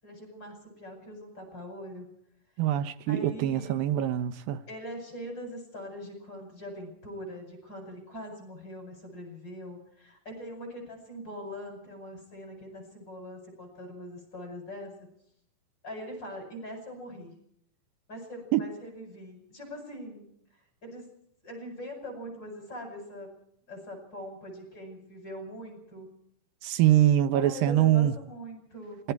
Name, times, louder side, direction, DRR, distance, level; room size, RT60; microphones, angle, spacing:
voice 1, 0.0-2.1 3.1-3.8 4.7-15.1 15.8-17.3 18.1-20.3 20.8-21.1 21.4-23.3 23.7-26.1 27.3-29.0, equal, 30° left, 8.8 m, -42 dB
voice 2, 2.6-4.6 18.5-18.6 26.6-28.1, right 12 dB, 75° right, 2.7 m, -24 dB
27.0 x 22.5 x 4.7 m
omnidirectional pair, 4.1 m